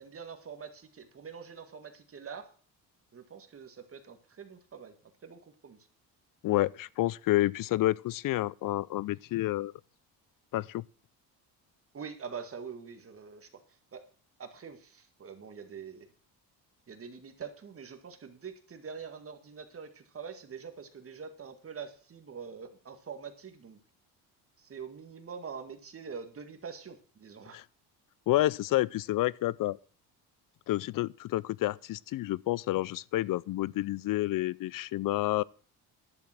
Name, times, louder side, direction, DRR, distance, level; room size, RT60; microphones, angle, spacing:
voice 1, 0.0-2.5 3.1-4.9 5.2-5.8 11.9-13.6 13.9-14.0 14.4-16.1 16.9-23.8 24.6-27.6, right 6 dB, 35° right, 1.8 m, -44 dB
voice 2, 6.4-9.7 10.5-10.8 27.5-27.6 28.3-29.8 30.7-35.4, left 16 dB, 55° left, 0.5 m, -29 dB
11.0 x 6.9 x 7.5 m
cardioid pair, 105°, 39 cm